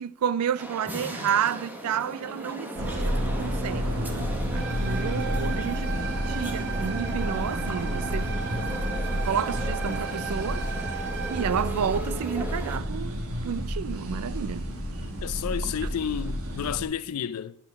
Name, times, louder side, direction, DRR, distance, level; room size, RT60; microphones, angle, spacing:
voice 1, 0.0-3.9 4.5-6.0 6.3-8.3 9.0-10.7 11.3-14.6, right 8 dB, 90° right, 0.4 m, -30 dB
sound 1, 0.6-12.8, equal, 10° right, 0.9 m, -38 dB
sound 2, 2.8-16.8, equal, 75° right, 1.2 m, -30 dB
sound 3, 4.5-11.5, right 7 dB, 50° right, 0.7 m, -36 dB
voice 2, 15.2-17.5, left 8 dB, 85° left, 0.4 m, -31 dB
8.7 x 4.3 x 5.7 m
head